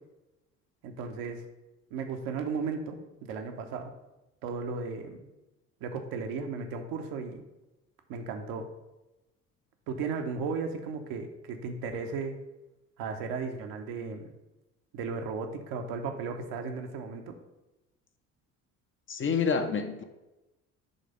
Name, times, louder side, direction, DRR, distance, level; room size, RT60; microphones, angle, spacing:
voice 1, 0.8-1.4 1.9-3.9 4.4-5.3 5.8-7.4 8.1-8.7 9.9-12.3 13.0-14.3 14.9-17.3, right 5 dB, 55° right, 4 dB, 1.0 m, -35 dB
voice 2, 19.1-20.0, left 5 dB, 30° left, 6 dB, 0.7 m, -28 dB
8.1 x 3.4 x 5.3 m, 1.0 s
figure-of-eight pair, 55°, 43 cm